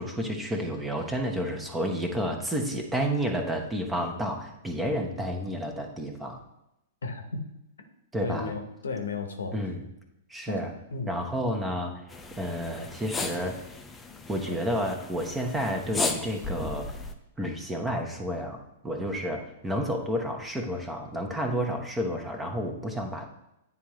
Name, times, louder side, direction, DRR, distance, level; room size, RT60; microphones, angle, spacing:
voice 1, 0.0-6.4 8.1-8.5 9.5-9.8 10.3-10.7 11.1-12.1 12.4-13.6 14.3-17.0 17.4-23.3, equal, 10° right, 3 dB, 1.0 m, -30 dB
voice 2, 7.0-7.4 8.2-9.6 10.5-10.6 10.9-11.2 14.5-14.6, left 4 dB, 70° left, 5 dB, 0.9 m, -34 dB
sound 1, 12.1-17.1, left 3 dB, 10° left, 0.6 m, -35 dB
9.7 x 3.7 x 3.1 m, 0.87 s
figure-of-eight pair, 105°, 0 cm